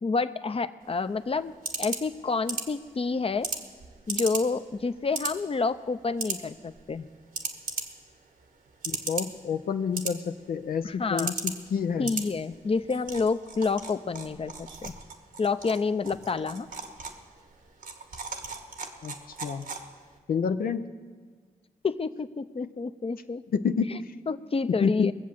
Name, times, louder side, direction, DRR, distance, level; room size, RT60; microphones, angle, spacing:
voice 1, 0.0-1.5 1.8-3.5 4.1-7.1 10.8-11.3 12.0-14.9 15.4-16.7 21.8-23.4 23.9-24.0 24.3-25.1, left 4 dB, 40° left, 11 dB, 0.6 m, -29 dB
sound 1, 0.8-20.2, right 4 dB, 80° right, 1.4 m, -38 dB
voice 2, 8.9-12.1 19.0-19.7 20.3-20.9 22.6-22.7 23.5-24.1 24.8-25.1, left 6 dB, 80° left, 7 dB, 0.5 m, -29 dB
20.0 x 7.4 x 7.3 m, 1.5 s
supercardioid pair, 40°, 15 cm